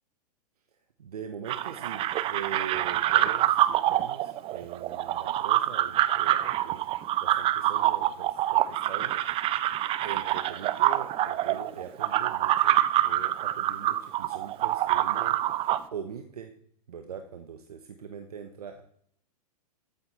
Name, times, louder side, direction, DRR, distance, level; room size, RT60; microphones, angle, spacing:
voice 1, 1.0-9.1 9.4-9.6 10.0-15.4 15.9-16.5 16.9-18.8, right 7 dB, 70° right, 7 dB, 1.2 m, -42 dB
sound 1, 1.5-15.8, right 13 dB, 25° right, 0.7 m, -26 dB
14.0 x 8.6 x 4.3 m, 0.66 s
figure-of-eight pair, 100°, 20 cm